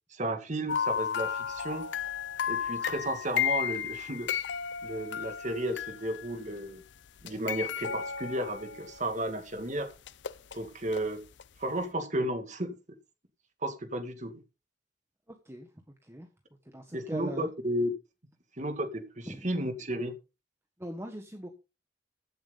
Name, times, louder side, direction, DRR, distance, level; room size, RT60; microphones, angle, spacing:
voice 1, 0.1-1.9 2.5-4.3 4.8-6.8 7.2-9.9 10.5-11.2 11.6-12.7 13.6-14.4 16.9-17.9 18.6-20.1, right 1 dB, 40° right, 2.2 m, -33 dB
sound 1, 0.7-6.6 7.2-9.3 10.1-11.0 11.4-11.5, left 8 dB, 75° left, 0.6 m, -33 dB
voice 2, 16.6-17.5 19.3-19.5 20.8-21.5, equal, 15° right, 1.5 m, -40 dB
15.5 x 7.6 x 4.0 m
head